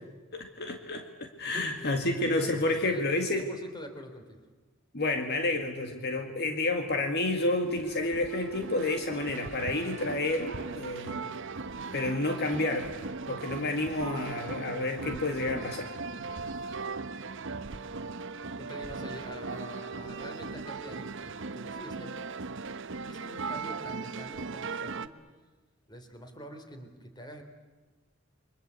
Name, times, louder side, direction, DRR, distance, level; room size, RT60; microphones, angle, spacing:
voice 1, 0.3-3.5 4.9-11.2 11.9-12.9 13.3-15.9, left 2 dB, 55° left, 5 dB, 2.1 m, -30 dB
voice 2, 1.5-2.3 2.7-3.0 3.3-4.4 18.6-22.1 23.1-25.1 25.9-27.4, equal, 20° left, 6 dB, 3.5 m, -45 dB
sound 1, 7.4-25.1, right 4 dB, 65° right, 0.9 m, -39 dB
30.0 x 23.5 x 8.3 m, 1.3 s
head